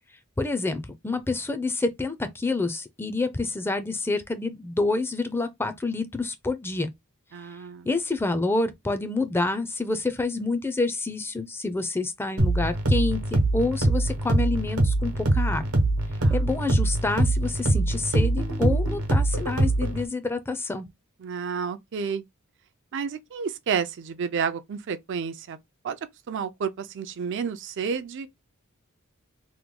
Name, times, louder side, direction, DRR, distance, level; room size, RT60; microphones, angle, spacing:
voice 1, 0.4-6.9 7.9-15.7 16.3-20.9, left 3 dB, 10° left, 0.4 m, -28 dB
voice 2, 7.3-7.9 16.2-16.4 21.2-22.2 22.9-25.6 25.8-26.0 26.3-28.3, right 6 dB, 55° right, 0.4 m, -30 dB
sound 1, 12.4-20.0, right 2 dB, 75° right, 1.0 m, -23 dB
3.0 x 2.2 x 3.6 m
head